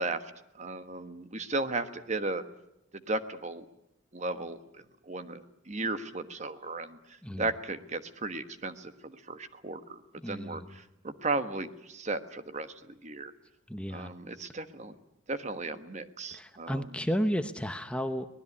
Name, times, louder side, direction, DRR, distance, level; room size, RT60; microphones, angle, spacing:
voice 1, 0.0-2.4 2.9-3.6 4.1-13.3 13.9-14.9 15.3-16.9, right 2 dB, 35° right, 10 dB, 1.3 m, -36 dB
voice 2, 10.2-10.7 13.7-14.1 16.3-18.3, equal, 5° left, 8 dB, 0.8 m, -33 dB
24.0 x 19.0 x 9.7 m, 0.85 s
head